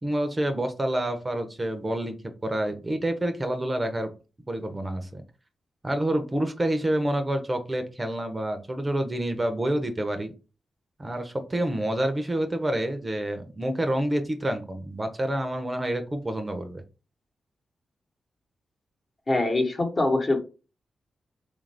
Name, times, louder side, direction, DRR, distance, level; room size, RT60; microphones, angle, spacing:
voice 1, 0.0-2.2 2.4-4.1 4.5-5.2 5.8-10.3 11.0-16.8, right 1 dB, 25° right, 7 dB, 0.6 m, -28 dB
voice 2, 19.3-20.4, left 2 dB, 40° left, 3 dB, 1.0 m, -23 dB
3.3 x 2.5 x 3.3 m, 0.32 s
cardioid pair, 60°, 0 cm